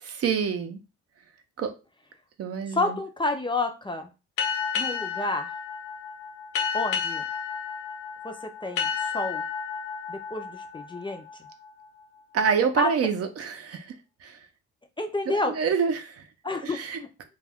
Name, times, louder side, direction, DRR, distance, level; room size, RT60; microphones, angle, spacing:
voice 1, 0.0-0.8 1.6-1.7 2.4-2.9 12.3-13.9 14.2-14.4 15.3-16.2 16.6-17.0, right 6 dB, 55° right, 8 dB, 0.6 m, -27 dB
voice 2, 2.7-4.1 4.8-5.5 6.7-7.2 8.2-9.4 10.1-11.2 12.8-12.9 15.0-15.6 16.4-17.1, left 2 dB, 15° left, 5 dB, 0.4 m, -29 dB
sound 1, 4.4-11.7, left 6 dB, 75° left, 0.7 m, -31 dB
2.3 x 2.2 x 3.4 m, 0.29 s
cardioid pair, 90°, 30 cm